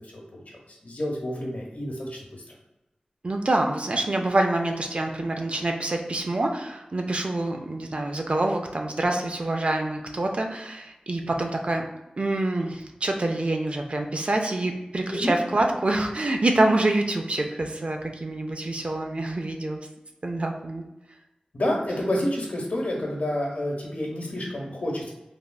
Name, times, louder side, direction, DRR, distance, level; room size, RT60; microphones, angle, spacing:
voice 1, 0.8-2.4 15.1-15.4 21.5-25.1, left 1 dB, 75° left, -3 dB, 0.9 m, -29 dB
voice 2, 3.2-11.9 12.2-19.8 20.2-20.8, right 2 dB, 50° right, 3 dB, 0.4 m, -26 dB
3.3 x 2.4 x 2.2 m, 0.95 s
wide cardioid pair, 60°, 3 cm